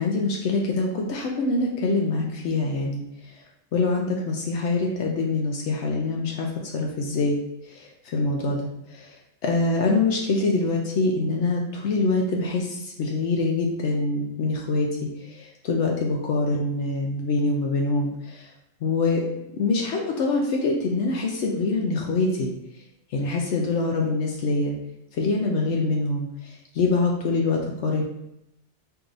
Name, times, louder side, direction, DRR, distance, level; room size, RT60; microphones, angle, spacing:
voice 1, 0.0-3.0 3.7-7.4 7.7-8.7 8.9-9.1 9.4-18.4 18.8-19.2 19.5-22.5 23.1-24.7 25.2-26.3 26.7-28.0, left 3 dB, 80° left, 0 dB, 0.9 m, -24 dB
4.7 x 2.6 x 2.6 m, 0.81 s
omnidirectional pair, 1.2 m